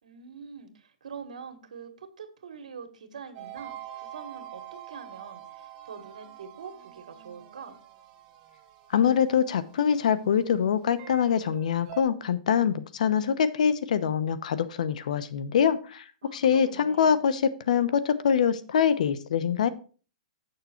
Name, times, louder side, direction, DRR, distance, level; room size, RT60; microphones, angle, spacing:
voice 1, 0.0-7.8 16.2-17.2, right 6 dB, 85° right, 7 dB, 1.8 m, -44 dB
sound 1, 3.3-12.0, right 11 dB, 30° right, 1.3 m, -46 dB
voice 2, 8.9-16.0 16.3-19.7, left 7 dB, 75° left, 14 dB, 0.9 m, -24 dB
8.3 x 6.6 x 4.4 m, 0.38 s
hypercardioid pair, 150°, 4 cm